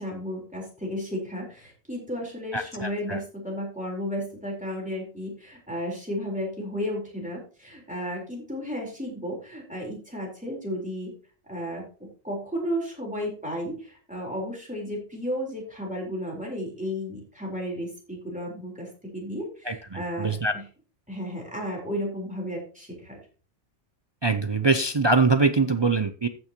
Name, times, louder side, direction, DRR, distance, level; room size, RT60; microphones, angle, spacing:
voice 1, 0.0-11.1 11.5-20.6 21.1-23.2, equal, 5° right, -2 dB, 4.0 m, -33 dB
voice 2, 2.5-3.2 19.7-20.5 24.2-26.3, right 3 dB, 40° right, 9 dB, 0.4 m, -23 dB
14.5 x 6.2 x 2.9 m, 0.37 s
omnidirectional pair, 1.3 m